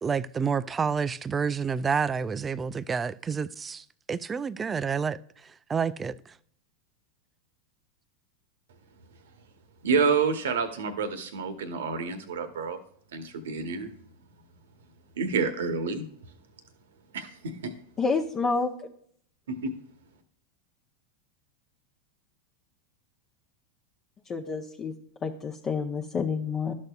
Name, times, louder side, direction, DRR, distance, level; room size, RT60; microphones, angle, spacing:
voice 1, 0.0-5.2 5.7-6.3, right 6 dB, 20° right, 0.3 m, -29 dB
voice 2, 9.8-12.8 13.1-13.9 15.2-16.0 17.1-17.7 19.5-19.7, right 5 dB, 70° right, 1.0 m, -28 dB
voice 3, 18.0-18.7 24.3-24.9 25.2-26.7, left 4 dB, 30° left, 0.7 m, -28 dB
12.0 x 6.5 x 2.4 m
hypercardioid pair, 90°, 0 cm